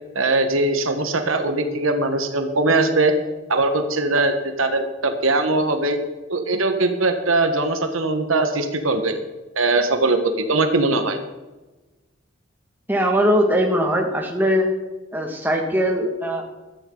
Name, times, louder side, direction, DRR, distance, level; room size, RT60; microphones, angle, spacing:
voice 1, 0.1-3.1 3.5-6.0 6.3-9.2 9.6-11.2, right 2 dB, 85° right, 7 dB, 1.5 m, -21 dB
voice 2, 12.9-14.7 15.1-16.4, equal, 10° right, 1 dB, 2.0 m, -20 dB
15.5 x 13.0 x 4.0 m, 1.1 s
head